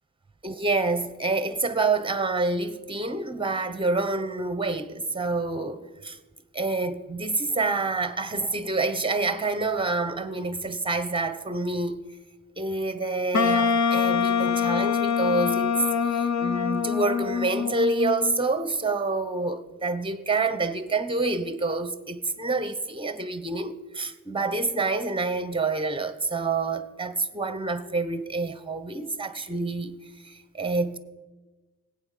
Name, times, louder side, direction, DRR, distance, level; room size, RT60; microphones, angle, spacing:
voice 1, 0.4-6.2 6.5-12.0 12.6-15.7 16.1-31.0, right 3 dB, 15° right, 0.9 m, -27 dB
Wind instrument woodwind instrument, 13.3-18.3, left 6 dB, 55° left, 0.8 m, -24 dB
17.5 x 8.4 x 6.6 m
wide cardioid pair, 95°, 33 cm